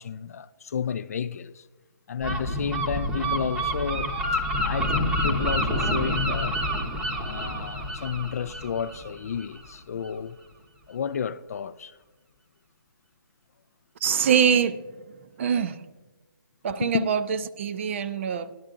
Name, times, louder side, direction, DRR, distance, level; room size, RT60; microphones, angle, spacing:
voice 1, 0.0-1.6 2.1-4.1 4.6-6.6 7.1-10.4 10.9-12.0 16.8-17.1, left 7 dB, 45° left, 0.3 m, -31 dB
Gull seagull, 2.2-9.7, equal, 5° right, 0.8 m, -28 dB
voice 2, 14.0-14.8 15.4-15.8 16.6-18.5, right 7 dB, 35° right, 0.5 m, -24 dB
16.5 x 11.5 x 2.5 m
hypercardioid pair, 155°, 12 cm